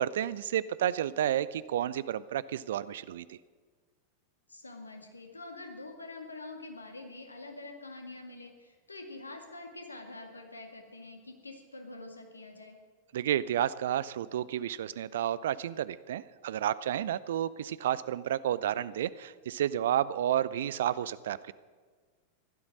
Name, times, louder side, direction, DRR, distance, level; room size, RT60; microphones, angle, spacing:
voice 1, 0.0-3.4 13.1-21.5, right 11 dB, 60° right, 18 dB, 0.5 m, -31 dB
voice 2, 4.5-12.8, left 2 dB, 80° left, 4 dB, 2.0 m, -46 dB
15.5 x 12.0 x 6.1 m, 1.5 s
figure-of-eight pair, 90°, 0 cm